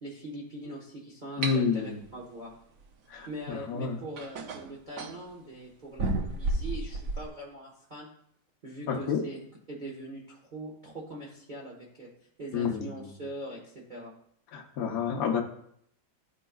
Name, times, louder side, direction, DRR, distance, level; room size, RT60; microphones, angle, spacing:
voice 1, 0.0-2.5 3.3-8.1 8.6-9.4 9.7-12.1 12.4-14.1, right 1 dB, 30° right, -4 dB, 1.0 m, -42 dB
voice 2, 1.4-2.0 3.1-4.0 8.9-9.2 12.5-13.1 14.5-15.4, left 6 dB, 60° left, 1 dB, 1.0 m, -29 dB
sound 1, 1.4-1.6 3.4-3.5 4.2-5.2 6.0-7.3, right 2 dB, 70° right, 0.8 m, -31 dB
12.5 x 4.4 x 2.3 m, 0.69 s
omnidirectional pair, 2.2 m